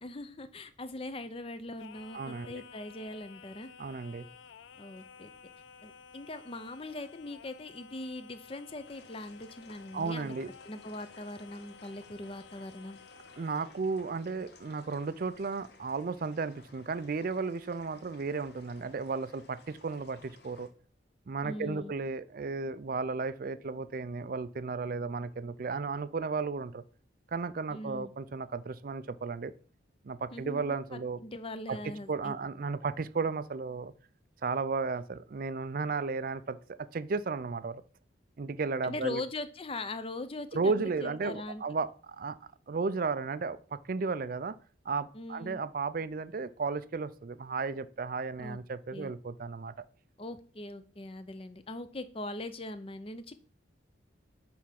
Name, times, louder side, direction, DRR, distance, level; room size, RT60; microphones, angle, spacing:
voice 1, 0.0-3.7 4.8-5.3 5.8-10.3 10.6-13.0 21.4-21.9 27.7-28.1 30.3-32.4 38.8-41.6 45.1-45.6 48.4-48.6 48.9-49.1 50.2-53.3, left 2 dB, 30° left, 0.6 m, -41 dB
Singing, 1.8-13.9, left 6 dB, 75° left, 0.4 m, -54 dB
voice 2, 2.1-2.6 3.8-4.3 9.9-10.5 13.4-20.7 21.3-26.8 27.3-29.5 30.0-31.2 31.7-31.8 32.1-33.9 34.4-37.8 38.4-39.2 40.5-42.4 42.7-44.5 44.9-49.7, right 4 dB, 50° right, 0.4 m, -34 dB
sound 1, 8.8-20.7, left 3 dB, 60° left, 1.1 m, -58 dB
9.4 x 3.5 x 5.8 m
head